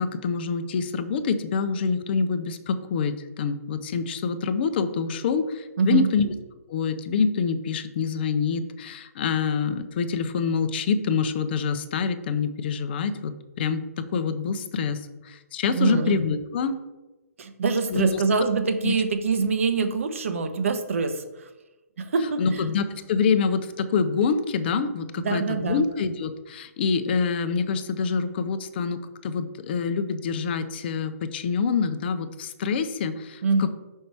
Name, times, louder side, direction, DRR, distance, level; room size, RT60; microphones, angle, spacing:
voice 1, 0.0-6.3 6.7-16.8 17.9-18.2 18.8-18.9 22.4-33.7, left 5 dB, 40° left, 10 dB, 0.6 m, -26 dB
voice 2, 5.8-6.1 15.7-16.2 17.4-21.5 22.0-22.6 25.2-25.9 33.4-33.7, right 4 dB, 55° right, 8 dB, 0.9 m, -24 dB
5.5 x 5.2 x 4.5 m, 1.1 s
figure-of-eight pair, 130°, 9 cm